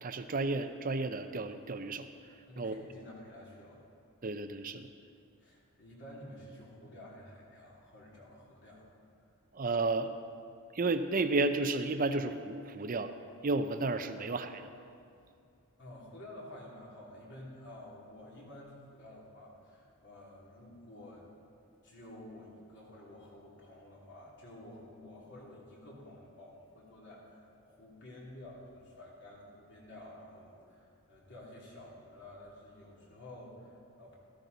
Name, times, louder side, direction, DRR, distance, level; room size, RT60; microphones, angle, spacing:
voice 1, 0.0-2.1 2.6-2.8 4.2-4.9 9.5-10.1 10.7-13.1 13.4-14.7, right 3 dB, 40° right, 9 dB, 0.6 m, -32 dB
voice 2, 2.5-3.8 5.4-8.9 15.8-21.3 21.8-34.1, left 1 dB, 55° left, -4 dB, 2.9 m, -51 dB
13.5 x 13.5 x 4.1 m, 2.4 s
head